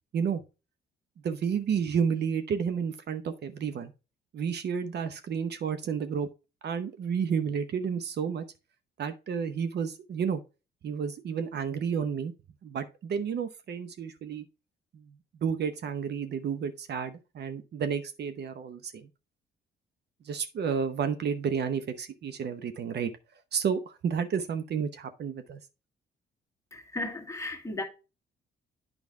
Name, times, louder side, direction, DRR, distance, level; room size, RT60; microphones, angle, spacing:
voice 1, 1.2-3.9 4.3-6.3 6.6-8.4 9.0-10.4 10.8-12.3 12.6-14.5 14.9-15.1 15.4-19.1 20.2-23.1 23.5-25.6, right 7 dB, 55° right, 0.8 m, -31 dB
voice 2, 26.7-27.8, left 2 dB, 15° left, 1.6 m, -35 dB
8.5 x 5.1 x 3.5 m
cardioid pair, 90°, 20 cm